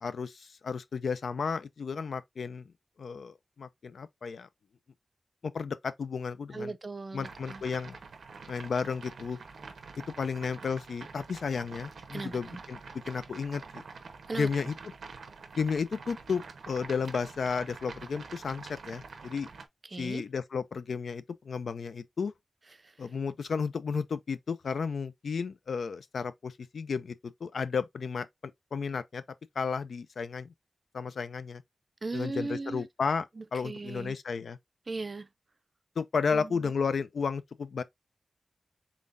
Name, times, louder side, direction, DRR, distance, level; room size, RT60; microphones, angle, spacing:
voice 1, 0.0-2.7 3.0-4.5 5.4-6.7 7.1-8.0 8.5-9.4 10.2-12.8 13.1-13.8 14.3-14.7 15.6-19.5 20.0-22.3 23.0-29.2 29.6-30.5 30.9-31.6 32.1-33.2 33.5-34.6 36.0-37.8, left 5 dB, 85° left, 0.4 m, -33 dB
voice 2, 6.5-7.6 12.1-12.6 14.3-14.5 19.8-20.2 22.8-23.1 32.0-32.9 33.4-34.2 34.9-35.3 36.3-36.7, right 3 dB, 35° right, 0.4 m, -38 dB
sound 1, 7.2-19.7, right 4 dB, 90° right, 0.7 m, -46 dB
3.8 x 3.6 x 2.5 m
wide cardioid pair, 135°, 0 cm